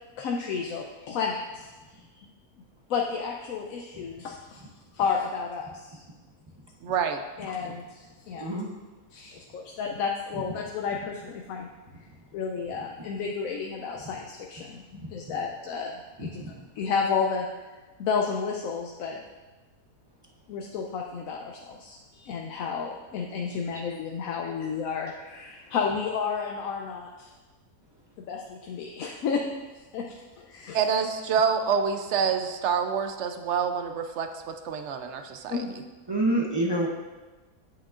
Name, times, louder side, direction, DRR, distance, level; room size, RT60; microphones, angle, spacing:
voice 1, 0.2-1.7 2.9-4.7 4.9-6.0 7.4-8.5 9.1-11.7 12.3-17.5 18.0-19.2 20.5-27.3 28.3-29.4 29.9-30.8 35.5-35.8, left 5 dB, 70° left, 1 dB, 1.0 m, -31 dB
voice 2, 6.8-7.2 30.7-35.6, right 6 dB, 65° right, 7 dB, 0.7 m, -27 dB
voice 3, 8.3-8.7 13.0-13.1 15.0-15.4 16.2-16.5 23.7-23.8 36.1-36.9, right 1 dB, 30° right, -1 dB, 0.5 m, -28 dB
8.8 x 7.8 x 2.5 m, 1.2 s
omnidirectional pair, 1.6 m